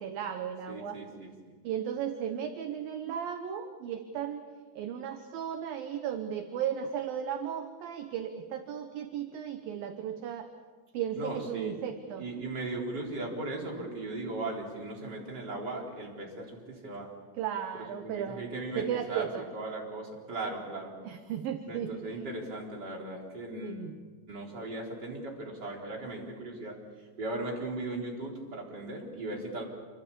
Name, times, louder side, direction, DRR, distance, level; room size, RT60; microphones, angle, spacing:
voice 1, 0.0-1.0 1.6-4.5 4.8-10.5 10.9-12.2 17.4-18.4 18.8-19.4 21.0-22.1 23.6-23.9, right 9 dB, 70° right, 7 dB, 2.4 m, -35 dB
voice 2, 0.7-1.5 11.2-11.9 12.2-17.1 17.7-20.9 21.7-23.8 24.3-26.8 27.2-29.6, right 2 dB, 25° right, -1 dB, 4.1 m, -38 dB
27.0 x 25.0 x 7.1 m, 1.5 s
omnidirectional pair, 5.2 m